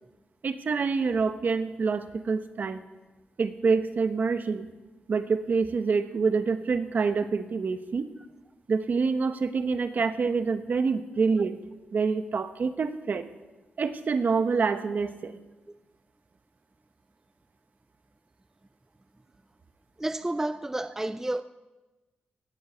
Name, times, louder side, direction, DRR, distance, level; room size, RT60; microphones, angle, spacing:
voice 1, 0.4-2.8 3.4-4.7 5.1-8.1 8.7-11.6 11.9-13.3 13.8-15.4, right 5 dB, 55° right, 1.1 m, -26 dB
voice 2, 20.0-21.4, right 1 dB, 15° right, 0.5 m, -30 dB
18.0 x 8.1 x 8.0 m
cardioid pair, 80°, 3 cm